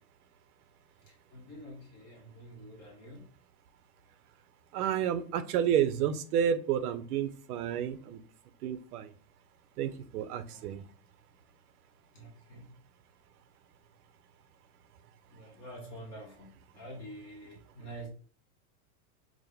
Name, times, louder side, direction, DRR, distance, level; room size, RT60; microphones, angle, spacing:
voice 1, 1.1-3.3 10.5-10.9 12.1-12.7 15.3-18.1, right 1 dB, 15° left, -1 dB, 0.3 m, -47 dB
voice 2, 4.7-8.2 8.6-9.1 9.8-10.8, right 9 dB, 80° right, 11 dB, 0.7 m, -30 dB
4.9 x 2.1 x 3.5 m, 0.42 s
supercardioid pair, 155°, 44 cm